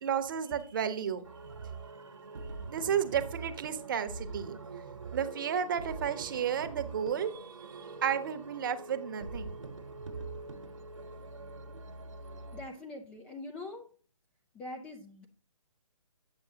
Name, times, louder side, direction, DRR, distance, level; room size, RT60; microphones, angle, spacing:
voice 1, 0.0-1.2 2.7-4.6 5.1-9.5, right 8 dB, 40° right, 10 dB, 0.9 m, -32 dB
sound 1, 1.2-12.6, right 4 dB, 65° right, 1.2 m, -44 dB
voice 2, 12.5-13.9 14.5-15.3, left 2 dB, 5° left, 2 dB, 0.4 m, -43 dB
8.8 x 6.8 x 2.8 m, 0.42 s
figure-of-eight pair, 140°, 17 cm